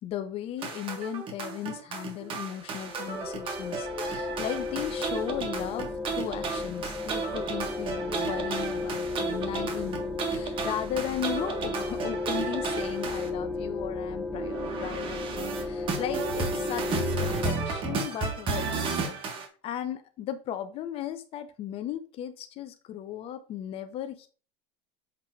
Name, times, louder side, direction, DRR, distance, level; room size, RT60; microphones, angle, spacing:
voice 1, 0.0-24.3, left 10 dB, 45° left, 9 dB, 0.8 m, -36 dB
sound 1, 0.6-13.3 14.3-19.5, right 5 dB, 35° right, 1.6 m, -33 dB
sound 2, 2.7-17.5, left 3 dB, 5° left, 0.8 m, -34 dB
7.4 x 3.7 x 4.5 m, 0.36 s
supercardioid pair, 125°, 14 cm